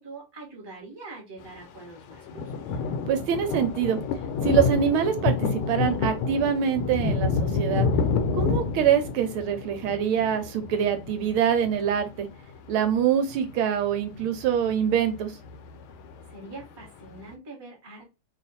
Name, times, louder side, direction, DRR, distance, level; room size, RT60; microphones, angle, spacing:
voice 1, 0.0-2.8 16.3-18.1, right 3 dB, 15° right, 0 dB, 0.9 m, -44 dB
sound 1, 1.8-1.9 2.1-13.6 13.9-17.1, left 4 dB, 80° left, 1.4 m, -29 dB
voice 2, 3.1-4.0 4.4-7.9 8.3-12.3 12.7-15.4, right 8 dB, 80° right, 8 dB, 1.4 m, -24 dB
3.3 x 2.5 x 4.0 m, 0.26 s
omnidirectional pair, 2.4 m